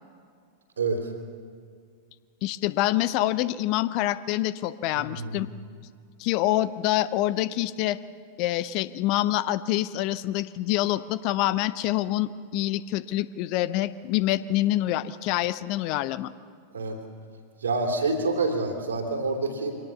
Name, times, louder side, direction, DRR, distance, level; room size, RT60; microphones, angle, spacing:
voice 1, 0.8-1.1 4.9-5.4 16.7-17.0 17.6-19.7, right 3 dB, 70° right, 3 dB, 3.2 m, -27 dB
voice 2, 2.4-5.5 6.2-8.0 8.4-16.3, left 15 dB, 45° left, 17 dB, 0.6 m, -26 dB
23.5 x 18.5 x 7.0 m, 2.1 s
figure-of-eight pair, 90°, 0 cm